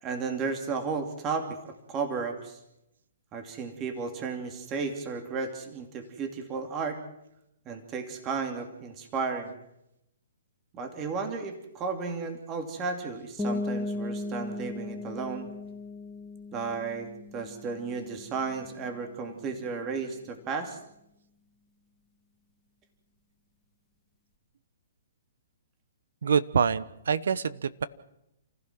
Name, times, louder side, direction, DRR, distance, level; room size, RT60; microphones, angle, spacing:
voice 1, 0.0-2.6 3.3-7.0 7.7-9.5 10.7-15.5 16.5-20.8, right 4 dB, 25° right, 5 dB, 2.7 m, -34 dB
sound 1, 13.4-19.0, left 2 dB, 10° left, 2.7 m, -37 dB
voice 2, 26.2-27.9, right 6 dB, 75° right, 16 dB, 1.1 m, -26 dB
29.0 x 15.5 x 6.1 m, 0.84 s
hypercardioid pair, 145°, 0 cm